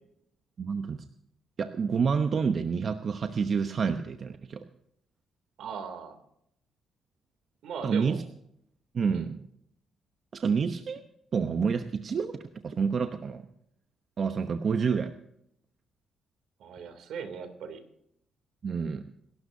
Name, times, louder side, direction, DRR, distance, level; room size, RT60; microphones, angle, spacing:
voice 1, 0.6-1.0 1.6-4.6 7.8-8.2 8.9-9.4 10.3-11.0 11.3-13.5 14.2-15.1 18.6-19.1, right 5 dB, 50° right, 7 dB, 0.9 m, -28 dB
voice 2, 5.6-6.2 7.6-8.2 9.1-9.3 16.6-17.8, right 6 dB, 75° right, 8 dB, 2.9 m, -38 dB
27.5 x 12.5 x 2.8 m, 0.74 s
cardioid pair, 90°, 0 cm